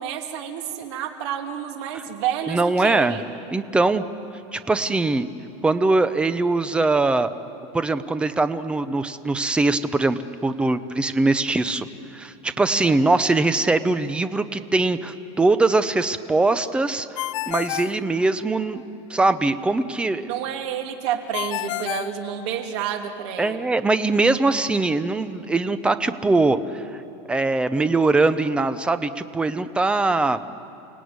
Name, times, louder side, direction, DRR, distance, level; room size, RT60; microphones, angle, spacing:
voice 1, 0.0-3.2 12.7-13.1 20.3-23.6, right 9 dB, 65° right, 4 dB, 2.7 m, -29 dB
voice 2, 2.5-3.2 3.5-4.0 4.5-5.3 5.6-7.3 7.7-11.9 12.1-18.8 19.1-20.3 23.4-27.0 27.3-30.4, right 3 dB, 5° right, 12 dB, 0.6 m, -22 dB
Ringtone, 17.2-18.8 21.3-23.0, left 16 dB, 85° left, 0.5 m, -31 dB
30.0 x 18.0 x 9.5 m, 2.9 s
supercardioid pair, 170°, 16 cm